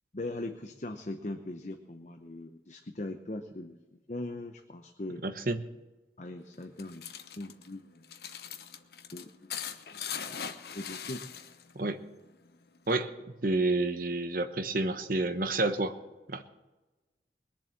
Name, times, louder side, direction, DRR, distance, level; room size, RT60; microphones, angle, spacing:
voice 1, 0.1-5.2 6.2-8.0 9.1-9.5 10.7-11.2, left 2 dB, 40° left, 6 dB, 0.8 m, -40 dB
voice 2, 5.2-5.6 11.7-12.0 12.9-13.1 13.4-16.0 16.3-16.4, right 2 dB, 50° right, 8 dB, 1.1 m, -29 dB
sound 1, 6.5-11.8 12.1-13.0, left 8 dB, 60° left, 0.9 m, -41 dB
21.0 x 7.4 x 7.4 m, 1.1 s
head